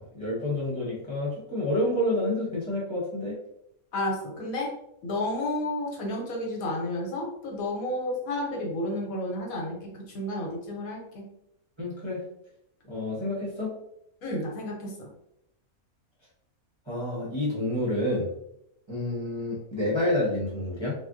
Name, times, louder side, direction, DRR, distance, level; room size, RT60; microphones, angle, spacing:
voice 1, 0.0-3.3 11.8-12.2 12.9-13.7 16.9-18.3 18.9-20.9, left 1 dB, 25° right, -7 dB, 0.7 m, -29 dB
voice 2, 3.9-4.7 5.0-11.2 14.2-15.1, left 1 dB, 75° left, -1 dB, 1.2 m, -31 dB
3.4 x 2.3 x 2.5 m, 0.78 s
omnidirectional pair, 1.5 m